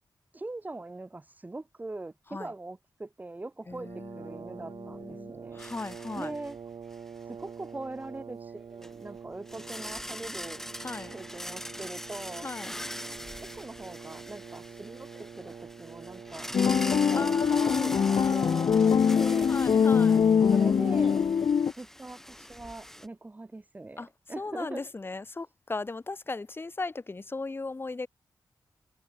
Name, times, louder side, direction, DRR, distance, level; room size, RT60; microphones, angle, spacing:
voice 1, 0.3-5.6 6.1-6.6 7.2-10.6 11.1-12.5 13.5-16.5 17.1-19.6 20.5-21.3 21.7-24.8, right 2 dB, 20° right, 6.2 m, -42 dB
voice 2, 3.7-6.3 10.8-11.1 12.4-12.7 17.1-19.1 19.5-20.2 24.0-24.1 24.4-28.1, left 3 dB, 30° left, 6.7 m, -37 dB
Brass instrument, 3.7-21.5, right 6 dB, 70° right, 7.7 m, -46 dB
sound 1, 5.6-6.6 6.9-7.1 8.8-8.9 9.5-23.1, equal, 5° left, 7.2 m, -42 dB
sound 2, 16.5-21.7, left 7 dB, 65° left, 0.7 m, -23 dB
wide cardioid pair, 130°, 8 cm